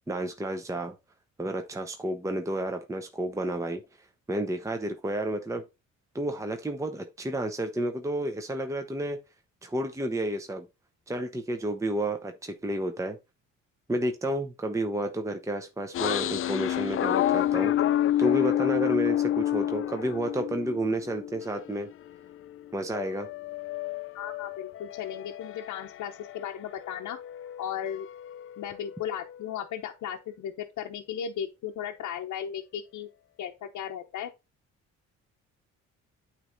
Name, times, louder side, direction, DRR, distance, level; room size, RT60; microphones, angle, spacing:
voice 1, 0.1-0.9 1.4-3.8 4.3-5.6 6.1-9.2 9.6-10.7 11.1-13.2 13.9-21.9 22.7-23.3, right 1 dB, 10° right, 0.8 m, -31 dB
sound 1, 15.9-21.9 22.3-26.5 26.8-29.4, left 12 dB, 45° left, 0.4 m, -29 dB
voice 2, 24.1-27.2 27.6-28.1 28.6-33.1 33.4-34.3, left 9 dB, 70° left, 0.8 m, -36 dB
8.8 x 3.3 x 3.9 m
cardioid pair, 90°, 30 cm